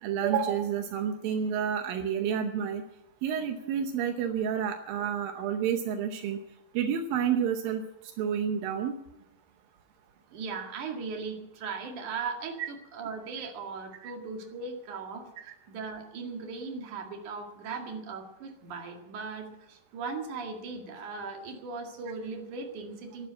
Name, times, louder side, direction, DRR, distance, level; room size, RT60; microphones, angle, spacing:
voice 1, 0.0-2.8 3.2-6.4 6.7-7.9 8.2-9.0 12.6-12.7 14.0-14.1 15.4-15.5 17.7-17.8, right 8 dB, 85° right, 6 dB, 2.7 m, -29 dB
voice 2, 10.3-23.3, right 4 dB, 65° right, 3 dB, 3.5 m, -38 dB
13.0 x 11.5 x 8.4 m, 0.89 s
omnidirectional pair, 4.0 m